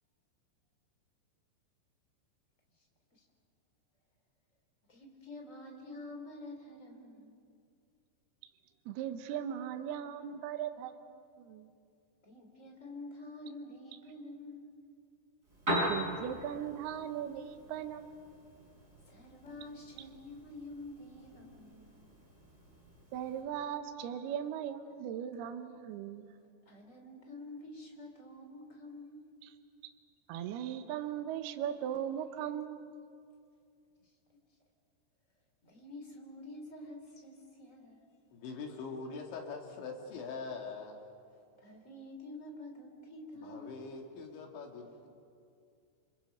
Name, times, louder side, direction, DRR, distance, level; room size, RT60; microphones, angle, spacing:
voice 1, 2.8-3.2 4.9-7.4 12.2-14.7 19.1-21.9 26.6-29.3 34.0-34.1 35.6-38.1 41.3-43.8, left 2 dB, 20° left, 2 dB, 2.8 m, -48 dB
voice 2, 8.9-11.7 15.9-18.1 23.1-26.3 29.4-29.5 30.3-32.9, right 9 dB, 75° right, 8 dB, 2.5 m, -38 dB
Piano, 15.4-23.4, equal, 15° right, 7.2 m, -41 dB
voice 3, 38.3-41.0 43.4-45.1, left 4 dB, 75° left, 2 dB, 4.5 m, -43 dB
28.0 x 27.5 x 5.5 m, 2.4 s
omnidirectional pair, 5.4 m